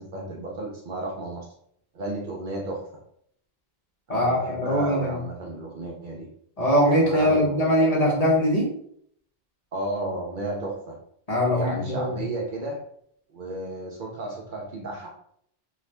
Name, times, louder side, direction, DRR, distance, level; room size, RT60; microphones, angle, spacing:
voice 1, 0.0-1.5 1.9-2.8 4.1-6.3 7.0-7.8 9.7-11.0 11.5-12.8 13.3-15.1, right 2 dB, 55° right, -1 dB, 0.6 m, -33 dB
voice 2, 4.1-5.2 6.6-8.7 11.3-12.2, equal, 40° left, -4 dB, 0.8 m, -22 dB
2.6 x 2.3 x 3.3 m, 0.67 s
omnidirectional pair, 1.1 m